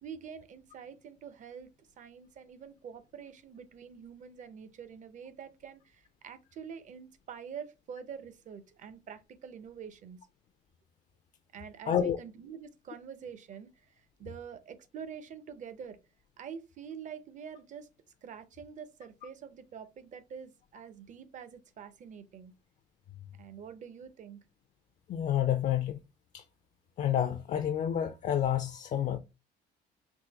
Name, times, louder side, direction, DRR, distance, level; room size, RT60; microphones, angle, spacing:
voice 1, 0.0-10.2 11.5-16.0 16.4-17.9 18.2-22.5 23.4-24.4, right 7 dB, 45° right, 0.6 m, -46 dB
voice 2, 11.9-12.2 25.1-26.0 26.3-26.4 27.0-29.2, left 10 dB, 50° left, 0.4 m, -29 dB
3.6 x 2.7 x 2.9 m
cardioid pair, 110°, 17 cm